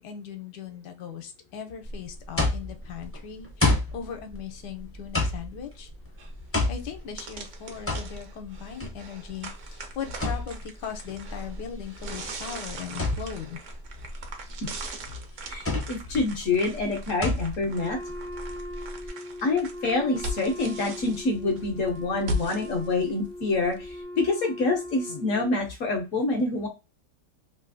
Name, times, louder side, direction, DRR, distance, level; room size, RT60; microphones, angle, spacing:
voice 1, 0.0-5.9 6.7-13.6, left 8 dB, 80° left, 6 dB, 1.2 m, -38 dB
sound 1, 1.8-19.1, left 2 dB, 20° left, 0.3 m, -31 dB
sound 2, 6.2-6.3 6.8-6.9 7.2-24.0, equal, 60° right, 0.8 m, -39 dB
voice 2, 15.5-18.0 19.4-26.7, left 3 dB, 65° left, 4 dB, 0.8 m, -27 dB
Wind instrument woodwind instrument, 17.8-25.7, left 1 dB, 80° right, 1.2 m, -39 dB
3.2 x 2.7 x 2.5 m, 0.26 s
omnidirectional pair, 1.8 m